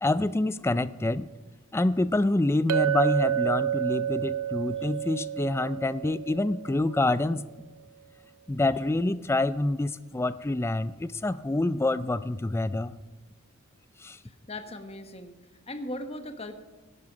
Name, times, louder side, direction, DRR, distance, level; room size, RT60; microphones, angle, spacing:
voice 1, 0.0-1.3 1.7-7.4 8.5-13.0 14.0-14.2, left 2 dB, 10° left, 15 dB, 0.3 m, -27 dB
Chink clink, 2.7-7.1, right 10 dB, 85° right, 0.5 m, -29 dB
voice 2, 14.2-15.3 15.7-16.5, left 1 dB, 30° left, 7 dB, 1.2 m, -38 dB
16.5 x 11.0 x 5.1 m, 1.2 s
head